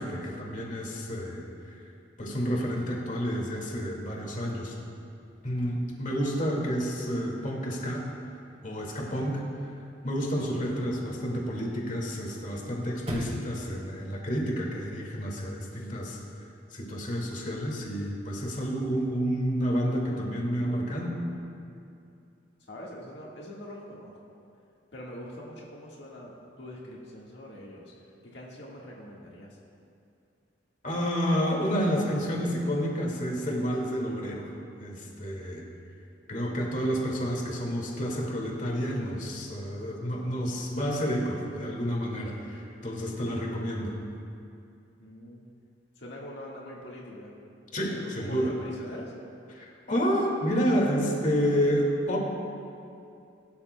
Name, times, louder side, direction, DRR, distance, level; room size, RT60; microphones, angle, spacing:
voice 1, 0.0-1.8 2.2-4.7 5.4-8.0 8.6-9.4 10.0-16.2 16.7-21.2 30.8-34.5 34.8-35.6 36.3-44.0 47.7-48.5 49.5-52.2, equal, 45° left, -1 dB, 2.0 m, -29 dB
Chirp tweet / Car / Slam, 5.2-15.2, equal, 35° right, 3.2 m, -46 dB
voice 2, 22.7-24.2 24.9-29.6 45.0-45.5 45.9-47.3 47.9-49.1, left 1 dB, 75° left, -4 dB, 1.6 m, -43 dB
21.5 x 12.5 x 2.2 m, 2.6 s
head